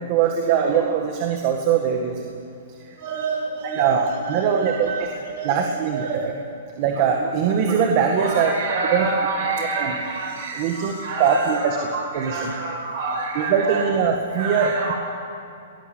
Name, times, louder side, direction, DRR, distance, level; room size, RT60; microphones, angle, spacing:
voice 1, 0.0-2.2 3.8-4.9 5.4-6.1 6.8-8.5 8.9-9.1 9.8-10.0 10.6-10.9 11.2-11.8 12.1-12.5 13.4-14.9, right 7 dB, 40° right, 2 dB, 1.7 m, -21 dB
voice 2, 3.0-6.4 8.2-13.9 14.3-14.9, right 4 dB, 55° right, 2 dB, 6.0 m, -28 dB
21.0 x 17.5 x 8.0 m, 2.5 s
hypercardioid pair, 155°, 0 cm